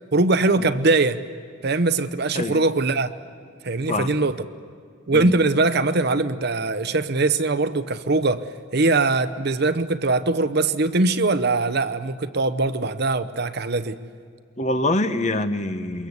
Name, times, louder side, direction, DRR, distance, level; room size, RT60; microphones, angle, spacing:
voice 1, 0.1-1.2 1.6-3.1 3.6-4.4 5.1-14.0, right 3 dB, 50° right, 12 dB, 0.8 m, -21 dB
voice 2, 3.9-4.2 5.1-5.4 14.6-16.1, left 1 dB, 35° left, 9 dB, 1.0 m, -25 dB
28.0 x 23.0 x 8.1 m, 2.1 s
head